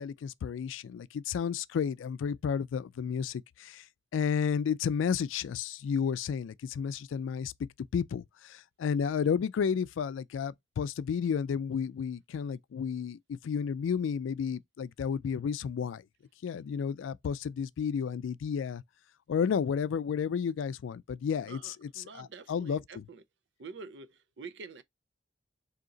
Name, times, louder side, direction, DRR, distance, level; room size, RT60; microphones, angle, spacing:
voice 1, 0.0-3.9 4.1-7.5 7.9-16.0 16.4-18.8 19.3-23.0, left 7 dB, 90° left, 0.3 m, -32 dB
voice 2, 21.4-23.2 23.6-24.8, right 4 dB, 65° right, 0.5 m, -47 dB
3.8 x 2.8 x 3.8 m
head